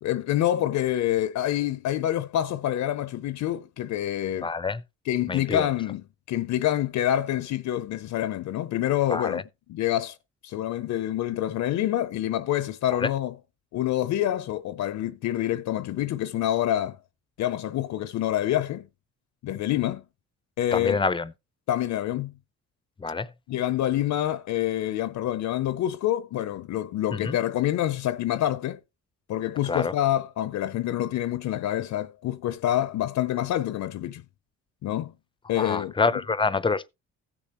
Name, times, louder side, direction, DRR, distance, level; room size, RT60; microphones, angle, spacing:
voice 1, 0.0-4.5 5.1-6.0 6.3-9.4 9.7-10.2 10.4-13.3 13.7-17.0 17.4-18.9 19.4-20.0 20.6-21.0 21.7-22.3 23.5-28.8 29.3-34.2 34.8-35.1 35.5-35.9, left 12 dB, 70° left, 0.6 m, -27 dB
voice 2, 4.4-4.8 5.3-5.7 9.1-9.4 12.9-13.1 20.7-21.3 23.0-23.3 27.1-27.4 29.7-29.9 35.5-36.9, left 4 dB, 15° left, 0.6 m, -27 dB
15.5 x 6.9 x 2.9 m
cardioid pair, 90°, 30 cm